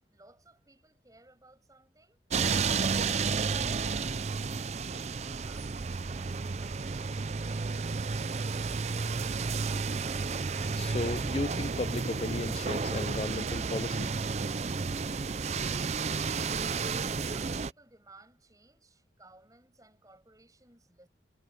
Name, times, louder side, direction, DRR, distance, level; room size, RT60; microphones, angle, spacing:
voice 1, 0.0-4.2 16.9-21.1, right 2 dB, 20° right, 7.6 m, -60 dB
traffic heavy under Brooklyn bridge, 2.3-17.7, right 4 dB, 35° right, 0.5 m, -32 dB
voice 2, 10.8-14.1, left 2 dB, 30° left, 0.5 m, -35 dB
head